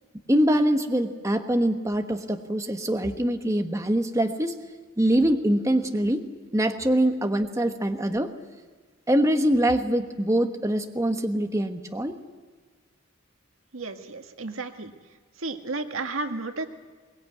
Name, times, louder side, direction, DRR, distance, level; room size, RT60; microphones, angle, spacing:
voice 1, 0.3-4.6 5.0-8.3 9.1-12.2, right 1 dB, 15° right, 5 dB, 1.2 m, -24 dB
voice 2, 13.7-14.9 15.4-16.7, right 3 dB, 85° right, 6 dB, 1.8 m, -32 dB
23.0 x 20.5 x 9.3 m, 1.5 s
head